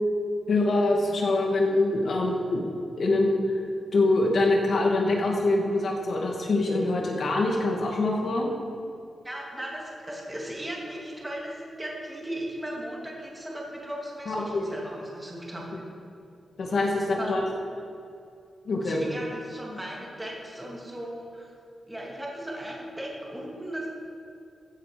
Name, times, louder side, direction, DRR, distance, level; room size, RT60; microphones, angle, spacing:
voice 1, 0.5-2.6 3.0-3.6 3.9-8.5 14.3-14.7 16.6-17.4 18.6-19.0, left 2 dB, 55° left, 0 dB, 2.3 m, -24 dB
voice 2, 9.2-15.7 16.9-17.3 18.8-21.5 21.9-23.9, right 1 dB, 10° right, -3 dB, 2.7 m, -37 dB
15.0 x 8.2 x 5.3 m, 2.5 s
wide cardioid pair, 135°, 0 cm